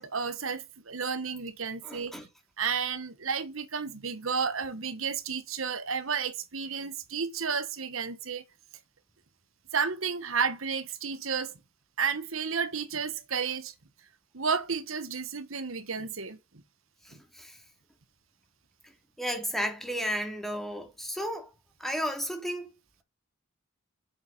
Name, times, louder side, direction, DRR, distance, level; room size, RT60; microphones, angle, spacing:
voice 1, 0.0-2.1 2.6-8.4 9.7-11.5 12.0-13.7 14.3-16.4, right 6 dB, 85° right, 1.3 m, -32 dB
voice 2, 1.8-2.3 17.0-17.6 18.8-18.9 19.2-21.5 21.8-22.7, equal, ahead, 2.9 m, -33 dB
7.7 x 7.5 x 8.5 m
head